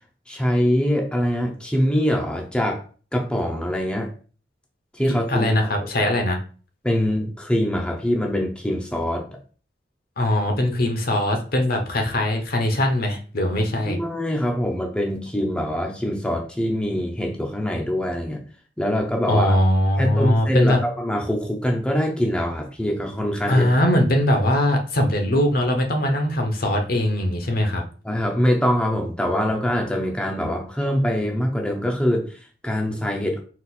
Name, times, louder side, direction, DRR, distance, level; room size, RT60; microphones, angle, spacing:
voice 1, 0.3-2.8 3.1-4.1 4.9-5.5 5.8-5.9 6.8-9.3 13.9-18.4 18.8-19.6 20.0-24.0 28.0-33.4, equal, 5° left, 1 dB, 0.6 m, -24 dB
voice 2, 5.3-6.4 10.2-14.0 19.3-20.8 23.5-27.8, left 1 dB, 55° left, 4 dB, 0.8 m, -21 dB
4.1 x 2.4 x 4.1 m, 0.39 s
head